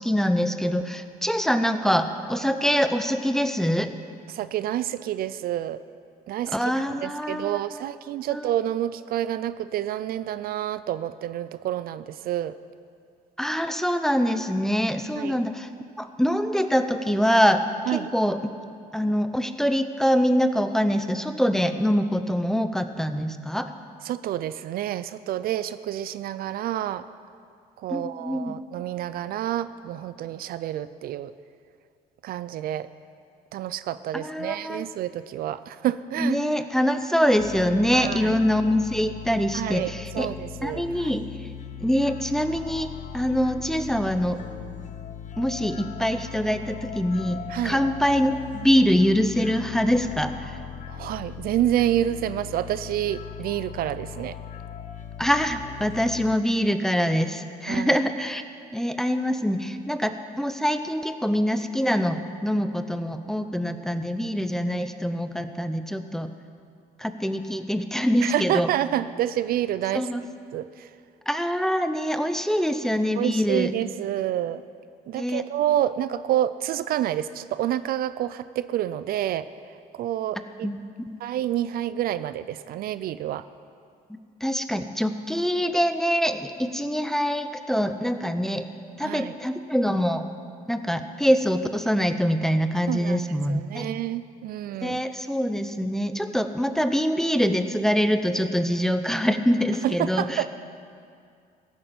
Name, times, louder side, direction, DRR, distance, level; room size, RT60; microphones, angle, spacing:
voice 1, 0.0-3.9 6.5-7.6 8.3-8.5 13.4-15.7 16.0-18.4 18.9-23.7 27.9-28.6 34.1-34.9 36.2-40.3 40.6-41.3 41.8-44.4 45.4-50.6 55.2-58.4 58.7-66.3 67.0-68.7 69.9-70.2 71.3-73.7 75.2-75.4 80.6-80.8 81.1-81.2 84.1-88.7 89.0-90.3 90.7-93.9 94.8-100.4, equal, 5° left, 9 dB, 0.6 m, -24 dB
voice 2, 4.3-5.8 6.3-6.6 6.9-12.6 15.2-15.4 17.9-18.1 24.0-27.0 27.8-31.3 32.2-32.9 33.5-36.4 37.9-38.4 39.5-41.1 47.5-47.8 50.9-54.4 57.7-58.0 68.2-70.1 70.5-70.9 73.2-74.6 75.1-80.7 81.2-83.4 89.0-89.4 92.9-95.0 99.8-100.5, right 12 dB, 60° right, 15 dB, 0.4 m, -28 dB
sound 1, 37.4-56.4, left 9 dB, 45° left, 0.8 m, -39 dB
15.0 x 8.8 x 5.8 m, 2.3 s
cardioid pair, 110°, 17 cm